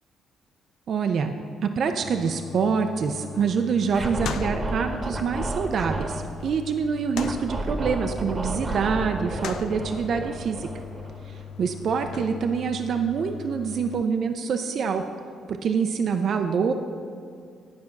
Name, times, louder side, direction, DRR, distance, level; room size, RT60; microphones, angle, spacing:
voice 1, 0.9-1.3 1.6-10.7 11.6-15.0 15.5-16.7, right 6 dB, 60° right, 6 dB, 0.5 m, -26 dB
sound 1, 2.0-14.0, left 8 dB, 75° left, 0.4 m, -39 dB
Scratching (performance technique), 3.9-6.2 7.2-11.5, right 2 dB, 30° right, 1.1 m, -31 dB
9.8 x 5.2 x 5.8 m, 2.3 s
cardioid pair, 90°, 0 cm